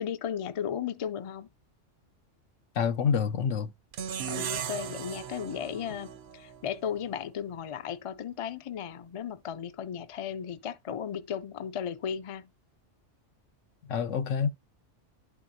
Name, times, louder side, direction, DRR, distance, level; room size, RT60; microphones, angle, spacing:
voice 1, 0.0-1.5 4.3-12.5, left 8 dB, 55° left, 0.3 m, -35 dB
voice 2, 2.7-3.7 13.9-14.5, left 6 dB, 90° left, 1.1 m, -27 dB
sound 1, 3.9-7.1, right 8 dB, 65° right, 0.8 m, -37 dB
11.0 x 4.3 x 2.7 m
omnidirectional pair, 1.2 m